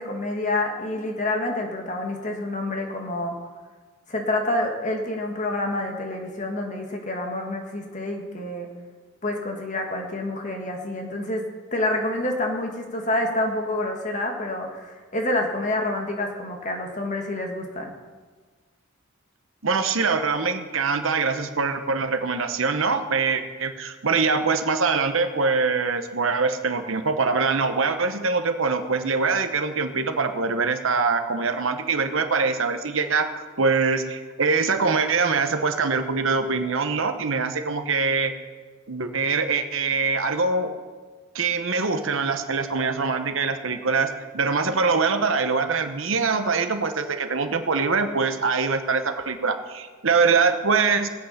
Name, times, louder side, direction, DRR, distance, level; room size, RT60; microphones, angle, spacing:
voice 1, 0.0-3.4 4.1-8.7 9.2-11.5 11.7-17.9, left 1 dB, 35° left, 2 dB, 1.7 m, -28 dB
voice 2, 19.6-38.3 38.9-40.7 41.3-51.1, right 4 dB, 60° right, 8 dB, 1.0 m, -23 dB
18.5 x 8.2 x 5.7 m, 1.5 s
head